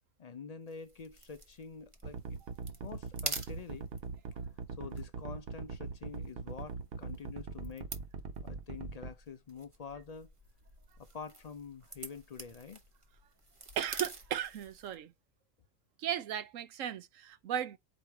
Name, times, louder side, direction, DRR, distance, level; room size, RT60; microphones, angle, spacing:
voice 1, 0.2-2.4 2.8-3.9 4.8-7.9 8.4-10.3 11.0-12.8, left 5 dB, 60° left, 0.4 m, -47 dB
sound 1, 0.7-15.0, right 3 dB, 25° right, 0.9 m, -48 dB
sound 2, 2.0-9.1, right 5 dB, 55° right, 0.9 m, -41 dB
voice 2, 13.8-15.1 16.0-17.8, right 10 dB, 80° right, 1.1 m, -36 dB
4.9 x 3.2 x 3.3 m
omnidirectional pair, 1.3 m